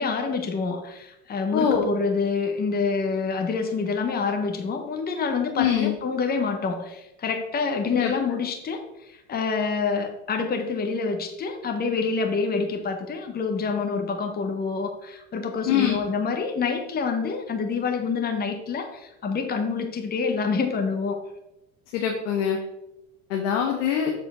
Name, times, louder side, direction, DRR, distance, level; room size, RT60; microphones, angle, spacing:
voice 1, 0.0-21.2, left 4 dB, 25° left, 4 dB, 1.1 m, -27 dB
voice 2, 1.5-1.9 5.6-5.9 7.9-8.1 15.7-16.0 21.9-22.6 23.3-24.1, left 8 dB, 85° left, 2 dB, 1.2 m, -23 dB
7.2 x 4.3 x 5.6 m, 0.92 s
supercardioid pair, 110°, 35 cm